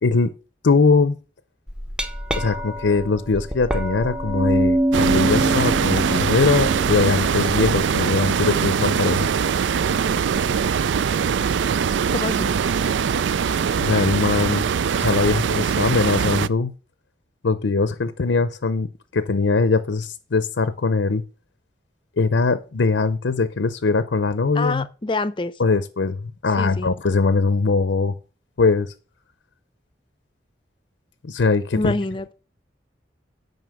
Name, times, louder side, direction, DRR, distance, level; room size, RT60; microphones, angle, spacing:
voice 1, 0.0-0.3 0.6-1.1 2.3-9.3 13.8-14.7 15.0-16.7 17.4-18.9 19.1-21.2 22.2-24.9 25.6-28.1 28.6-28.9 31.2-31.9, left 4 dB, 90° left, 0.6 m, -21 dB
Glass, 1.7-7.8, right 1 dB, 5° right, 0.8 m, -25 dB
sound 1, 4.9-16.5, right 6 dB, 85° right, 0.4 m, -22 dB
voice 2, 12.1-12.5 24.6-25.5 26.6-27.0 31.7-32.3, left 2 dB, 25° left, 0.6 m, -26 dB
9.3 x 5.5 x 6.4 m
head